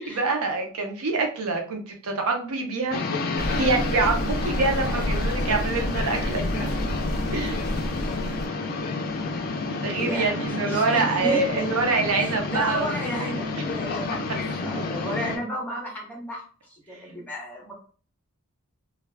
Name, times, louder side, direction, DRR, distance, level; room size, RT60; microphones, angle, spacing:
voice 1, 0.0-3.0 3.6-6.7 7.3-7.7 9.8-13.1 13.6-13.7 16.9-17.0, right 3 dB, 75° right, 3 dB, 0.6 m, -26 dB
sound 1, 2.9-15.4, left 3 dB, 40° left, 0.4 m, -30 dB
sound 2, 3.4-8.5, equal, 35° right, 1.0 m, -30 dB
voice 2, 10.0-11.7 12.2-16.4 16.7-17.7, equal, 5° left, -2 dB, 0.8 m, -33 dB
2.3 x 2.2 x 3.2 m, 0.41 s
head